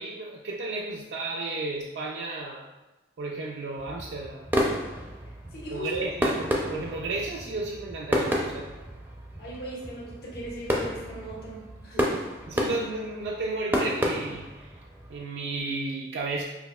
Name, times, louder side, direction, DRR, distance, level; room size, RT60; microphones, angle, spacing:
voice 1, 0.0-2.7 3.2-4.4 5.7-8.8 11.9-12.1 12.5-14.7 15.1-16.4, right 2 dB, 75° right, -1 dB, 0.4 m, -33 dB
sound 1, 3.8-15.2, equal, 10° right, 0.4 m, -31 dB
voice 2, 5.5-5.9 9.4-12.1, equal, 60° left, -6 dB, 1.2 m, -39 dB
6.2 x 2.7 x 2.3 m, 1.1 s
head